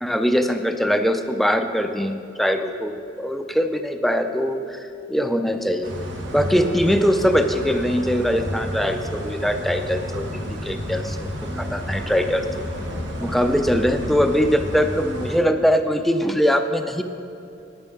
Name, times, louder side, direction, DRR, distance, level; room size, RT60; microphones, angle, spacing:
voice 1, 0.0-5.9 6.3-12.7 13.2-17.0, equal, ahead, 7 dB, 0.4 m, -22 dB
sound 1, 5.8-15.4, equal, 70° right, 1.8 m, -31 dB
9.8 x 8.8 x 5.8 m, 2.7 s
head